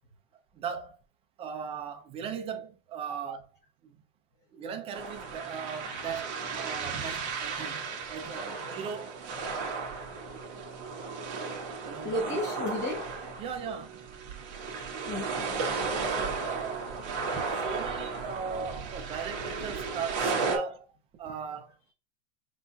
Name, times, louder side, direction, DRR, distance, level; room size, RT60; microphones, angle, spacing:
voice 1, 0.5-1.0 1.4-3.4 3.8-3.9 4.5-7.8 8.1-9.2 11.9-12.1 13.4-14.0 16.2-16.9 17.3-20.9 21.2-21.7, right 6 dB, 15° right, 0.3 m, -38 dB
sound 1, 4.9-20.6, right 4 dB, 40° right, 1.4 m, -34 dB
voice 2, 12.0-13.0 15.0-15.6, left 1 dB, 20° left, 2.6 m, -33 dB
5.4 x 3.9 x 2.2 m
supercardioid pair, 145°, 39 cm